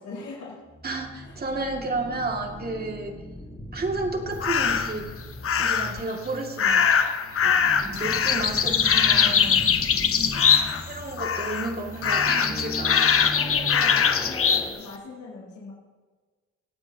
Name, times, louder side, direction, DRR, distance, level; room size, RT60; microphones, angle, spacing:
voice 1, 0.0-0.6 1.2-1.3 10.1-10.4 13.1-15.7, left 3 dB, 70° left, -5 dB, 4.6 m, -40 dB
sound 1, 0.7-14.7, equal, ahead, 3.2 m, -38 dB
voice 2, 0.8-3.1 3.7-5.1 5.6-6.9 7.4-9.7 10.9-13.1, right 3 dB, 30° right, 2 dB, 2.2 m, -32 dB
sound 2, 4.4-5.0 5.4-6.0 6.6-10.9 11.2-11.7 12.0-14.7, left 7 dB, 45° left, 1.1 m, -22 dB
26.5 x 8.9 x 2.8 m, 1.4 s
cardioid pair, 90°, 30 cm